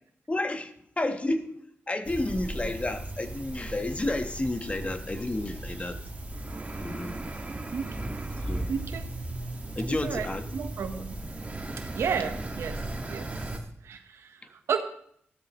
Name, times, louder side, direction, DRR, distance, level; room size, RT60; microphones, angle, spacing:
voice 1, 0.3-1.6 1.9-6.0 6.8-7.1 8.5-8.7 9.8-10.5, left 2 dB, 30° left, 7 dB, 1.2 m, -31 dB
sound 1, 2.1-13.6, right 2 dB, 30° right, 1.8 m, -36 dB
voice 2, 8.7-9.1 9.9-11.2 11.9-12.8 13.1-13.3 13.8-14.8, right 6 dB, 90° right, 7 dB, 1.1 m, -32 dB
15.0 x 12.5 x 3.1 m, 0.66 s
cardioid pair, 70°, 5 cm